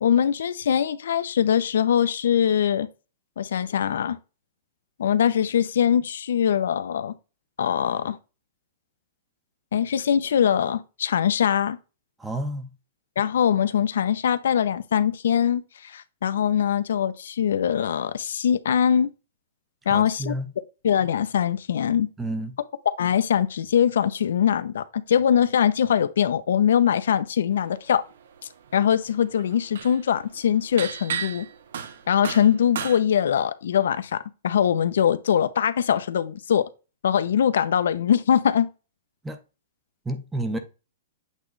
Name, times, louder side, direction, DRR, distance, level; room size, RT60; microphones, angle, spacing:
voice 1, 0.0-2.9 3.4-4.2 5.0-7.1 7.6-8.2 9.7-11.8 13.2-19.1 19.9-20.3 20.8-22.1 23.0-28.0 28.7-31.5 32.1-36.7 37.0-38.7, left 8 dB, 75° left, 0.6 m, -22 dB
voice 2, 12.2-12.7 19.9-20.5 22.2-22.5 39.2-39.4 40.1-40.6, right 1 dB, 5° right, 0.6 m, -30 dB
sound 1, 27.9-28.4 28.7-33.0, right 7 dB, 65° right, 0.9 m, -34 dB
8.2 x 3.1 x 3.9 m
hypercardioid pair, 175°, 0 cm